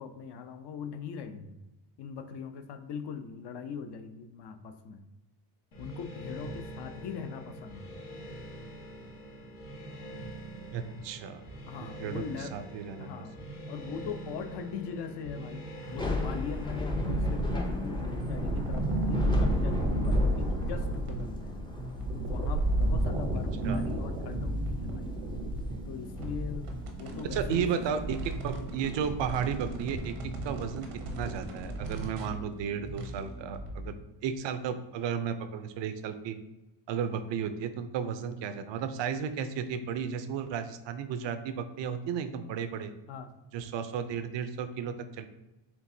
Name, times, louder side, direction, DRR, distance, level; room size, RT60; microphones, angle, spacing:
voice 1, 0.0-1.6 2.0-5.0 5.8-8.1 11.7-12.5 13.0-13.4 13.7-21.6 22.1-25.1 25.8-26.7 27.0-28.0 43.1-43.4, left 6 dB, 55° left, 9 dB, 0.6 m, -41 dB
sound 1, 5.7-17.0, right 1 dB, 80° left, 1.3 m, -44 dB
voice 2, 10.7-11.4 11.8-13.1 13.4-13.5 23.6-23.8 27.3-30.1 30.4-30.9 31.2-34.0 34.2-36.4 36.9-42.9 43.5-45.3, right 7 dB, 65° right, 10 dB, 0.5 m, -34 dB
Thunder / Rain, 15.8-29.0, left 2 dB, 10° left, 0.4 m, -35 dB
sound 2, 16.9-33.9, right 2 dB, 85° right, 0.9 m, -33 dB
4.4 x 3.4 x 2.6 m, 1.0 s
cardioid pair, 115°, 49 cm